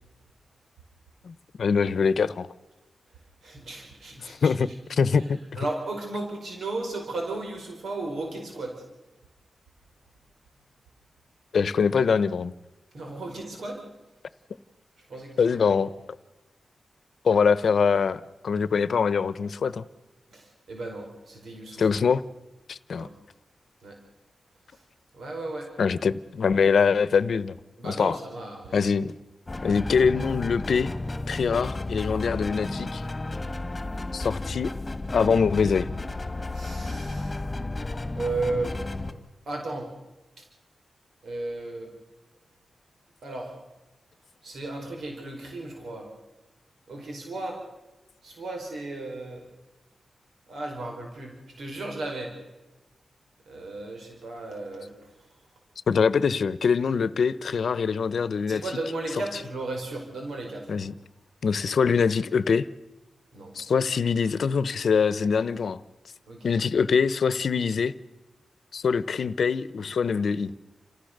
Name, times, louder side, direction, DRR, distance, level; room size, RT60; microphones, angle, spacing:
voice 1, 1.2-2.5 4.2-4.7 5.0-5.4 11.5-12.5 15.4-15.9 17.2-19.8 21.8-22.2 22.7-23.1 25.8-27.5 27.8-28.2 28.7-29.1 29.6-30.9 31.3-33.0 34.1-34.7 35.1-35.9 55.9-58.6 60.7-60.9 61.4-62.6 63.5-65.8 66.4-67.9 68.7-70.5, left 6 dB, 75° left, 0.9 m, -23 dB
voice 2, 3.4-4.8 5.2-5.3 5.6-8.8 12.9-13.8 15.0-15.8 20.3-22.0 22.9-23.1 23.8-24.0 24.7-24.8 25.1-25.7 27.8-28.8 36.5-37.4 38.1-38.8 39.5-39.9 40.4-40.5 41.2-41.9 43.2-43.6 44.4-46.1 46.9-47.7 48.2-49.5 50.5-52.4 53.5-55.1 58.5-60.7 63.3-63.6 66.3-66.5, right 2 dB, 80° right, 4.9 m, -35 dB
sound 1, 29.5-39.1, left 2 dB, 25° left, 1.9 m, -33 dB
29.0 x 15.5 x 6.7 m
wide cardioid pair, 90°, 0 cm